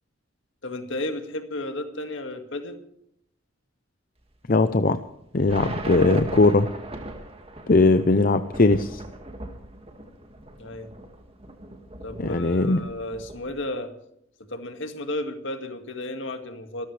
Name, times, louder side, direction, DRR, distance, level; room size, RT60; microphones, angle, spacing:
voice 1, 0.6-2.8 10.6-10.9 12.0-13.9 14.5-16.9, left 1 dB, 70° left, 6 dB, 2.1 m, -33 dB
voice 2, 4.5-5.0 5.3-6.7 7.7-9.0 12.2-12.8, left 3 dB, 45° left, 10 dB, 0.6 m, -19 dB
sound 1, 5.5-13.5, right 1 dB, 30° right, 2.0 m, -39 dB
26.5 x 13.5 x 3.4 m, 0.76 s
head